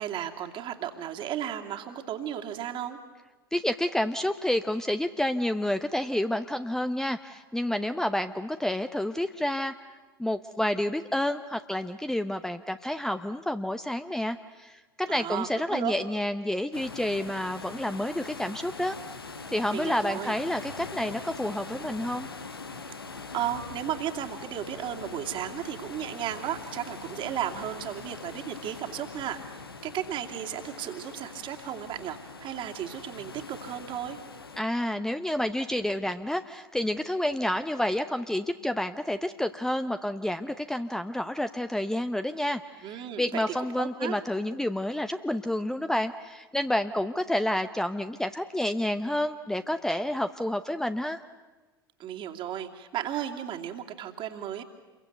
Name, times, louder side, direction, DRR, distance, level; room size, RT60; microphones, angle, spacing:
voice 1, 0.0-3.0 15.1-15.9 19.7-20.4 23.3-34.2 42.8-43.4 43.8-44.2 52.0-54.6, right 10 dB, 45° right, 3 dB, 2.6 m, -34 dB
voice 2, 3.5-9.7 10.2-19.0 19.5-22.3 34.6-51.2, left 1 dB, 5° left, 9 dB, 0.8 m, -29 dB
sound 1, 16.7-34.6, left 4 dB, 85° left, 1.3 m, -42 dB
28.5 x 23.0 x 8.0 m, 1.2 s
figure-of-eight pair, 75°, 12 cm